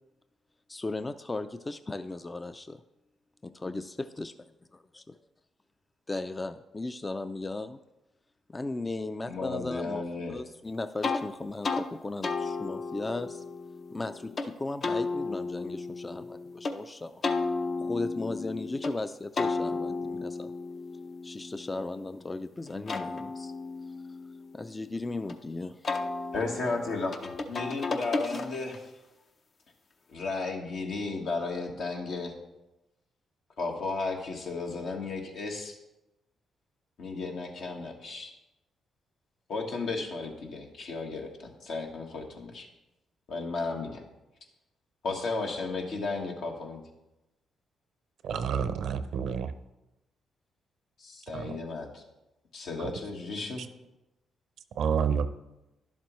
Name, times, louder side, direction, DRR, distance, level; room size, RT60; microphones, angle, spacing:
voice 1, 0.7-2.8 3.6-4.3 4.7-5.2 6.1-7.8 8.5-10.0 10.3-13.4 13.9-17.2 17.8-20.5 21.2-23.5 24.5-26.0, left 2 dB, 25° left, 0.4 m, -36 dB
voice 2, 9.3-10.3 26.3-28.8 30.1-32.3 33.6-35.8 37.0-38.3 39.5-42.7 43.3-44.0 45.0-46.8 51.0-52.0 52.5-53.6, left 3 dB, 70° left, 1.4 m, -34 dB
sound 1, 11.0-11.2 11.6-11.9 12.2-14.5 14.8-16.7 17.2-18.9 19.4-22.2 22.7-25.3 25.8-28.9, left 3 dB, 50° left, 0.7 m, -34 dB
voice 3, 48.2-49.5 51.3-51.5 54.8-55.3, right 7 dB, 75° right, 0.6 m, -28 dB
11.0 x 7.3 x 3.1 m
supercardioid pair, 60°, 0 cm